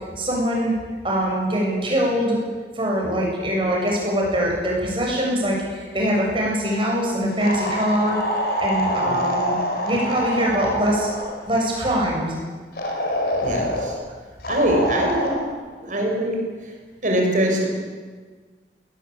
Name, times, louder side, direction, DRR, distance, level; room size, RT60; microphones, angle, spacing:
voice 1, 0.2-0.7 1.0-2.4 2.8-8.2 8.6-9.6 9.8-11.1 11.5-12.3, equal, 30° right, -2 dB, 7.5 m, -23 dB
sound 1, 7.4-11.4 12.8-13.9 14.4-15.4, equal, 60° left, 4.7 m, -25 dB
voice 2, 13.4-13.9 14.5-15.4 15.8-16.4 17.0-17.7, right 1 dB, 45° right, 1 dB, 6.2 m, -22 dB
21.0 x 19.0 x 8.9 m, 1.5 s
head